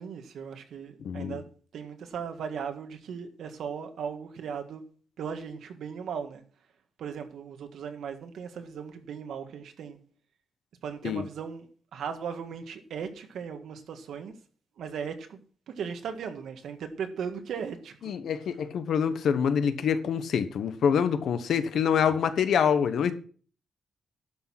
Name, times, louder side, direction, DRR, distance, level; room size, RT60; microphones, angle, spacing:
voice 1, 0.0-1.4 1.7-4.8 5.2-6.4 7.0-10.0 10.8-14.3 14.8-15.4 15.7-18.1, right 7 dB, 80° right, 1.6 m, -37 dB
voice 2, 1.0-1.4 11.0-11.2 18.0-23.1, left 7 dB, 70° left, 1.1 m, -26 dB
11.5 x 6.5 x 5.9 m
wide cardioid pair, 175°, 0 cm